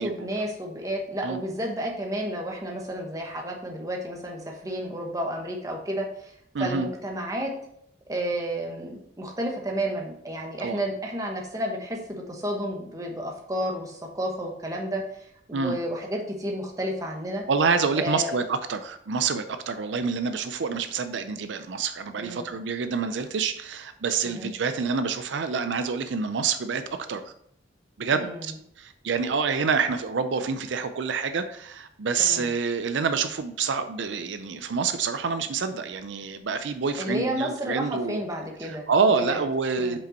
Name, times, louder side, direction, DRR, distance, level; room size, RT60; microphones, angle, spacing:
voice 1, 0.0-6.3 6.6-7.5 8.1-15.0 15.5-17.4 18.0-18.4 22.2-22.5 24.2-24.5 28.1-28.4 32.2-32.5 37.0-39.4 39.8-40.0, right 1 dB, 20° right, 1 dB, 1.1 m, -31 dB
voice 2, 6.5-6.9 10.6-10.8 15.5-15.8 17.5-26.8 27.1-27.3 28.0-28.5 28.8-38.2 38.6-40.0, right 5 dB, 80° right, 9 dB, 0.5 m, -27 dB
5.5 x 5.2 x 4.3 m, 0.71 s
head